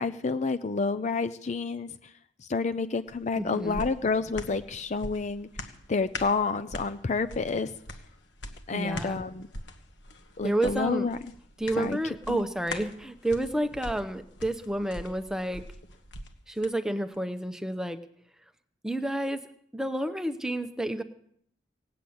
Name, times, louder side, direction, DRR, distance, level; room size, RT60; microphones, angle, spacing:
voice 1, 0.0-1.9 2.5-5.5 5.9-7.8 8.7-9.5 10.4-11.2 11.8-12.0 12.3-12.4, left 4 dB, 40° left, 11 dB, 0.5 m, -29 dB
sound 1, 3.1-16.7 17.1-17.2, left 2 dB, 70° left, 1.3 m, -43 dB
voice 2, 3.3-3.8 8.7-9.2 10.4-11.1 11.6-15.6 16.5-18.0 18.8-19.4 19.7-21.0, right 1 dB, 5° right, 9 dB, 0.8 m, -30 dB
18.0 x 7.6 x 8.6 m, 0.69 s
head